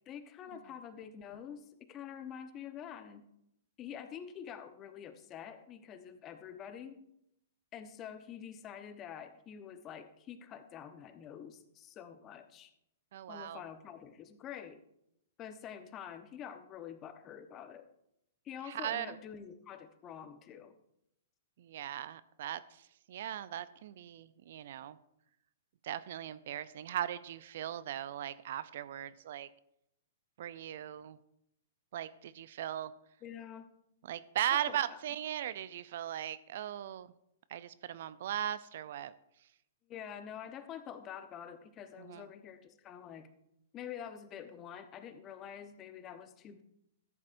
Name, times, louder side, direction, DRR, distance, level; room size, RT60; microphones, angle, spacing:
voice 1, 0.1-3.2 3.8-7.0 7.7-12.7 13.3-14.8 15.4-17.9 18.4-20.7 33.2-33.7 34.7-35.0 39.9-43.3 43.7-46.6, left 8 dB, 30° left, 9 dB, 0.9 m, -47 dB
voice 2, 13.1-13.6 18.6-19.2 21.6-25.0 25.8-29.5 30.4-31.2 31.9-32.9 34.1-37.1 37.5-39.1 42.0-42.3, right 11 dB, 60° right, 16 dB, 0.5 m, -38 dB
14.0 x 11.0 x 2.6 m, 0.79 s
hypercardioid pair, 115°, 0 cm